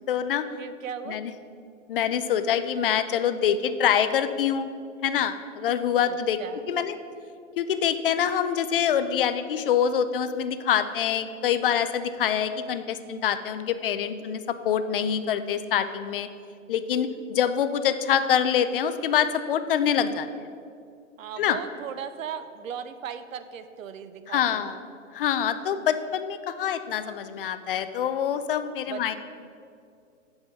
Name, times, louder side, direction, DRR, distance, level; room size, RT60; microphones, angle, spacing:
voice 1, 0.1-0.5 1.1-1.3 1.9-4.7 5.0-6.4 6.7-6.9 7.6-16.3 16.7-20.3 21.4-21.6 24.3-24.8 25.1-29.2, left 8 dB, 45° left, 11 dB, 0.4 m, -25 dB
voice 2, 0.6-1.2 6.1-6.9 14.1-14.3 21.2-24.7 28.9-29.2, right 8 dB, 80° right, 11 dB, 0.7 m, -37 dB
7.1 x 5.4 x 5.9 m, 2.4 s
hypercardioid pair, 155°, 39 cm